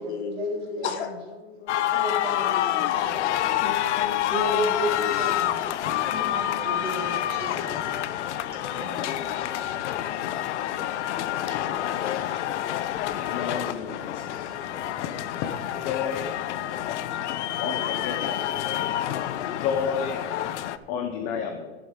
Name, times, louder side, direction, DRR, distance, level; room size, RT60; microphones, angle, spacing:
voice 1, 0.0-5.5 5.8-7.0, left 5 dB, 70° left, 9 dB, 1.3 m, -37 dB
sound 1, 1.7-20.8, left 12 dB, 90° left, 0.7 m, -28 dB
voice 2, 1.9-3.7 4.3-5.7 6.3-7.8 8.7-9.6 9.9-10.0 11.5-12.5, right 1 dB, 15° right, -4 dB, 3.3 m, -34 dB
sound 2, 3.0-20.7, left 5 dB, 50° left, 1.4 m, -44 dB
voice 3, 13.3-14.5 15.0-15.2 15.4-15.5 15.8-16.3 17.6-18.6 19.5-20.2 20.9-21.7, left 7 dB, 25° left, 6 dB, 0.5 m, -31 dB
12.0 x 11.5 x 3.7 m, 1.3 s
supercardioid pair, 175°, 34 cm